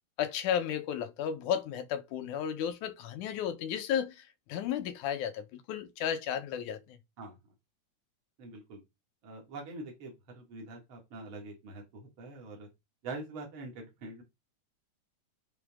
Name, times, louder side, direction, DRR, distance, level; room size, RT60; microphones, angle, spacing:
voice 1, 0.2-7.0, left 9 dB, 90° left, 2.4 m, -33 dB
voice 2, 8.4-8.8 9.2-12.7 13.0-14.2, right 2 dB, 45° right, 2.8 m, -44 dB
9.6 x 3.9 x 3.6 m
omnidirectional pair, 3.4 m